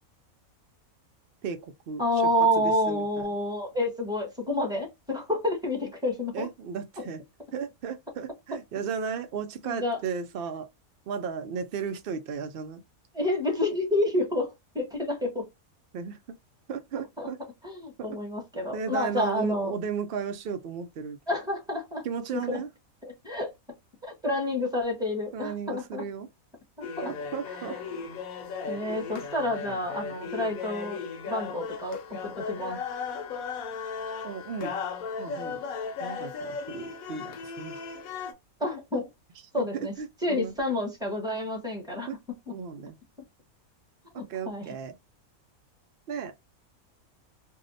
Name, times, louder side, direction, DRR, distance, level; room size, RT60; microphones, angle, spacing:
voice 1, 1.4-2.0 2.4-3.3 6.3-7.2 7.5-10.7 11.1-12.8 15.9-16.2 16.7-17.4 18.0-18.1 18.7-21.2 22.0-22.7 25.3-26.3 27.0-27.8 34.2-34.7 35.2-35.6 36.0-37.8 38.9-39.0 39.7-40.6 42.1-42.2 42.5-43.0 44.3-44.9 46.1-46.3, right 6 dB, 85° right, 0.5 m, -35 dB
voice 2, 2.0-6.5 7.0-7.1 9.6-10.0 13.1-15.5 17.2-17.3 17.6-19.7 21.3-22.0 22.3-22.6 23.0-23.5 24.0-26.0 26.8-27.1 28.7-31.0 31.3-32.8 38.6-39.1 39.5-39.9 40.2-42.1 44.1-44.7, left 1 dB, 5° right, 0.9 m, -29 dB
sound 1, 26.8-38.3, left 5 dB, 75° left, 1.2 m, -36 dB
2.7 x 2.0 x 3.8 m
omnidirectional pair, 1.5 m